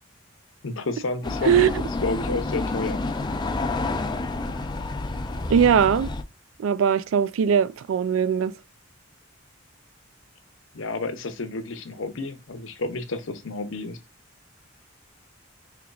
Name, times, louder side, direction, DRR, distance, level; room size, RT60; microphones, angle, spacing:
voice 1, 0.6-1.7 2.0-3.0 10.7-14.0, left 3 dB, 75° left, 0.7 m, -30 dB
sound 1, 1.2-6.2, left 2 dB, 20° left, 0.4 m, -29 dB
voice 2, 5.5-6.1 6.6-8.5, right 7 dB, 85° right, 0.3 m, -20 dB
5.1 x 2.9 x 2.3 m
head